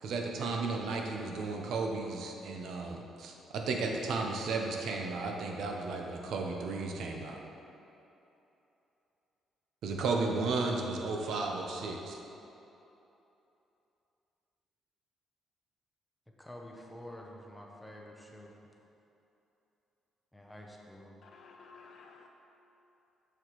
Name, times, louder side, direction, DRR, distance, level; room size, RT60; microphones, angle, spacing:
voice 1, 0.0-7.4 9.8-12.2, right 3 dB, 70° right, 1 dB, 0.7 m, -34 dB
voice 2, 16.4-18.6 20.3-21.2, left 1 dB, 5° left, -1 dB, 0.7 m, -48 dB
voice 3, 21.2-22.3, left 4 dB, 50° left, 1 dB, 0.7 m, -54 dB
6.5 x 6.4 x 3.1 m, 3.0 s
cardioid pair, 135°, 0 cm